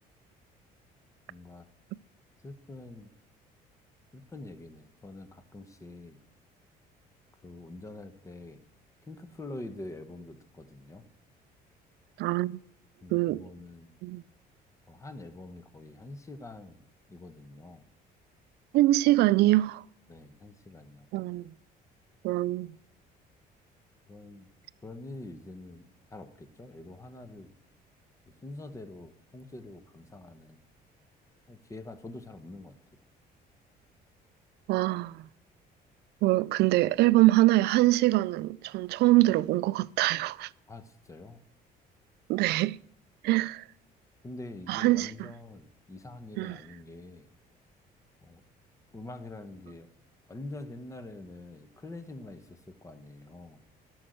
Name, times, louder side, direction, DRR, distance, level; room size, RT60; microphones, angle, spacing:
voice 1, 1.3-1.7 2.4-3.1 4.1-6.2 7.3-8.6 9.1-11.1 13.0-13.9 14.9-17.9 20.1-21.1 24.1-24.5 24.8-25.9 26.1-27.5 28.3-30.6 31.5-33.0 40.7-41.4 44.2-47.3 48.2-48.4 48.9-49.9 50.3-53.6, left 2 dB, 20° left, 1.0 m, -45 dB
voice 2, 12.2-12.6 13.1-13.4 14.0-14.2 18.7-19.8 21.1-21.5 22.2-22.7 34.7-35.3 36.2-40.5 42.3-42.8 43.2-43.6 44.7-45.1 46.4-46.6, right 17 dB, 75° right, 0.4 m, -24 dB
12.0 x 6.4 x 7.9 m
cardioid pair, 110°, 17 cm